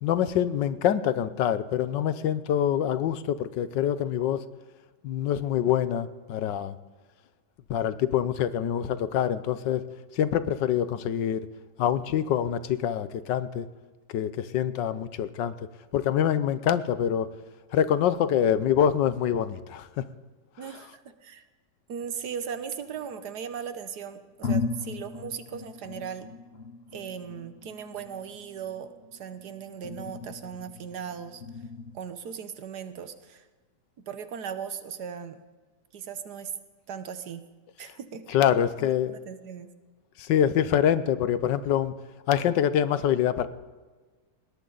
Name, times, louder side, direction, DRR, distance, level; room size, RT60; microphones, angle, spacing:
voice 1, 0.0-4.4 5.0-6.8 7.7-9.8 10.2-11.5 11.8-13.7 14.1-15.7 15.9-17.3 17.7-20.0 38.3-39.1 40.2-41.9 42.3-43.5, left 9 dB, 85° left, 14 dB, 1.5 m, -25 dB
voice 2, 20.6-21.4 21.9-26.3 26.9-31.4 31.9-33.5 34.1-35.4 35.9-36.5 36.9-37.4 37.8-38.4 38.8-39.7, right 7 dB, 65° right, 10 dB, 1.6 m, -38 dB
sound 1, 22.0-23.4 23.9-24.0 24.4-32.0, left 4 dB, 45° left, 1.0 m, -37 dB
20.0 x 17.5 x 4.0 m, 1.3 s
omnidirectional pair, 1.9 m